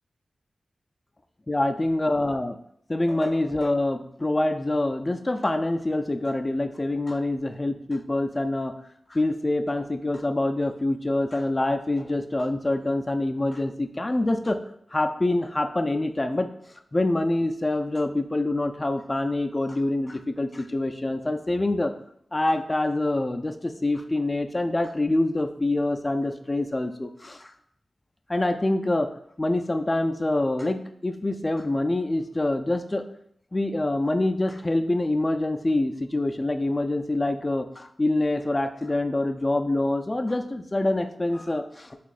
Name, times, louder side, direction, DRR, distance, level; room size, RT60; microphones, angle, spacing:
voice 1, 1.5-2.5 2.9-8.7 9.1-14.6 14.9-16.5 16.9-21.9 22.3-27.5 28.3-29.1 29.4-33.1 33.5-42.0, left 2 dB, 30° left, 8 dB, 0.4 m, -25 dB
5.9 x 3.0 x 2.4 m, 0.70 s
cardioid pair, 45°, 0 cm